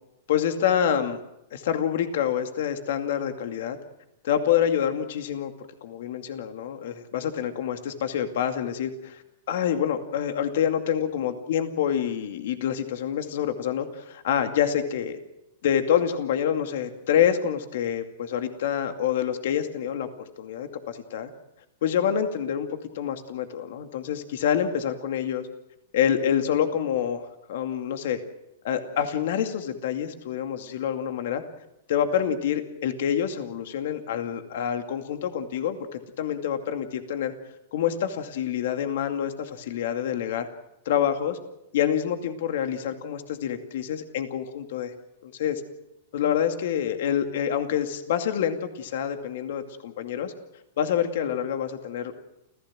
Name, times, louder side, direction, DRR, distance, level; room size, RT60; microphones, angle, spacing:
voice 1, 0.3-1.2 1.5-3.8 4.2-5.5 5.8-9.2 9.5-15.2 15.6-20.1 20.4-21.3 21.8-25.5 25.9-28.2 28.6-31.4 31.9-37.3 37.7-40.5 40.9-41.4 41.7-44.9 45.2-45.6 46.1-50.3 50.8-52.2, left 9 dB, 65° left, 7 dB, 2.3 m, -27 dB
29.0 x 16.0 x 7.6 m, 0.86 s
hypercardioid pair, 115°, 0 cm